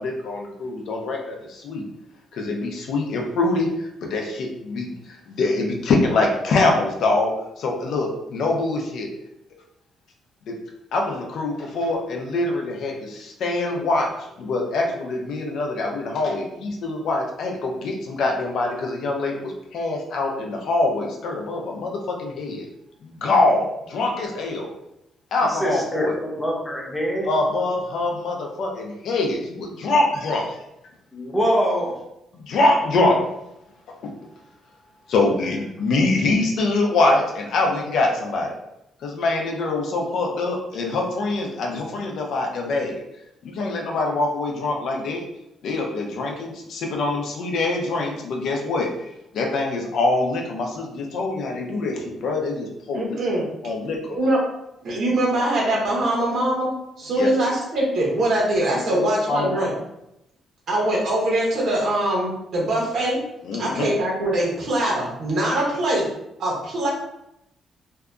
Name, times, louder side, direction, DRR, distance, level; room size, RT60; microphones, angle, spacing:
voice 1, 0.0-1.8 2.3-7.3 7.6-9.1 10.5-10.6 10.9-14.1 14.4-22.7 23.0-24.7 25.3-26.1 27.3-30.5 32.3-33.2 34.0-34.1 35.1-38.5 39.0-43.0 43.4-45.2 45.6-53.2 53.6-54.2 57.2-57.3 58.9-59.5 63.4-63.9, left 2 dB, 70° left, 1 dB, 0.5 m, -24 dB
voice 2, 25.4-27.3 31.1-32.1, equal, 10° left, -3 dB, 0.8 m, -24 dB
voice 3, 52.9-53.4 54.2-54.4 54.8-56.7 57.0-59.7 60.7-63.2 63.6-66.1 66.4-66.9, right 1 dB, 65° right, -3 dB, 0.9 m, -22 dB
2.7 x 2.4 x 2.3 m, 0.84 s
cardioid pair, 90°, 0 cm